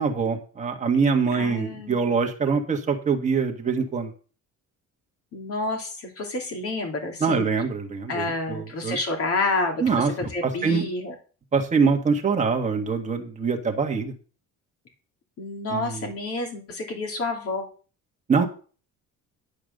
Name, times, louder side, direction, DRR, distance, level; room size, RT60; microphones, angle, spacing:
voice 1, 0.0-4.1 7.2-9.0 9.8-10.1 10.4-10.8 11.5-14.1 15.7-16.1 18.3-18.5, right 5 dB, 20° right, 3 dB, 1.5 m, -24 dB
voice 2, 1.3-2.2 5.3-7.5 8.1-11.1 15.4-17.7, left 2 dB, 45° left, 3 dB, 2.9 m, -29 dB
11.0 x 5.2 x 6.5 m, 0.39 s
cardioid pair, 170°, 32 cm